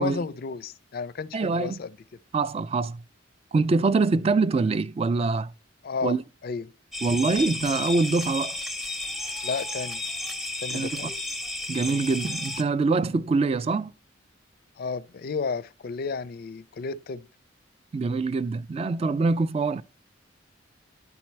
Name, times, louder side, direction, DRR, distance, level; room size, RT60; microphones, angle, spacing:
voice 1, 0.0-2.0 5.8-6.7 9.4-10.0 10.6-11.1 14.8-17.3, left 4 dB, 50° left, 0.4 m, -32 dB
voice 2, 1.3-1.8 2.3-3.0 3.5-5.5 6.0-6.2 7.0-8.6 10.7-11.1 11.7-13.9 17.9-19.8, right 3 dB, 30° right, 0.3 m, -24 dB
sound 1, 6.9-12.6, left 2 dB, ahead, 0.7 m, -33 dB
11.0 x 4.2 x 4.5 m
head